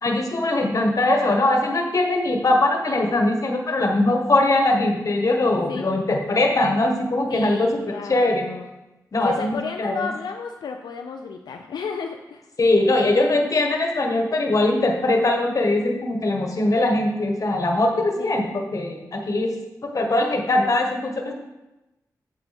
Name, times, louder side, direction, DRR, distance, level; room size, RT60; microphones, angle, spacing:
voice 1, 0.0-8.5 9.1-10.1 12.6-19.5 19.8-21.3, left 2 dB, 50° left, 2 dB, 1.5 m, -21 dB
voice 2, 7.3-8.7 9.2-12.4 18.2-18.3, left 5 dB, 85° left, 3 dB, 0.5 m, -32 dB
8.2 x 7.1 x 3.5 m, 1.0 s
cardioid pair, 60°, 7 cm